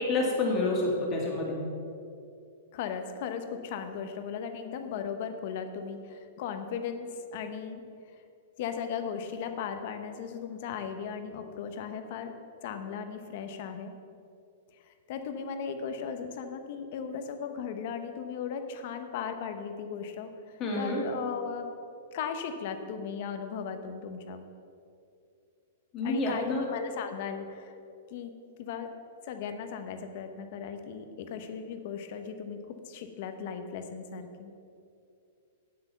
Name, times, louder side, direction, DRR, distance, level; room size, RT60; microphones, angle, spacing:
voice 1, 0.0-1.6 20.6-21.0 25.9-26.6, left 2 dB, 25° left, -2 dB, 2.2 m, -28 dB
voice 2, 2.7-7.8 8.6-12.3 12.6-13.9 15.1-20.3 20.7-21.7 22.1-24.4 26.0-27.7 28.1-28.3 28.6-28.9 29.2-32.6 32.9-34.5, left 7 dB, 50° left, 7 dB, 0.9 m, -37 dB
8.7 x 8.0 x 5.6 m, 2.5 s
hypercardioid pair, 160°, 0 cm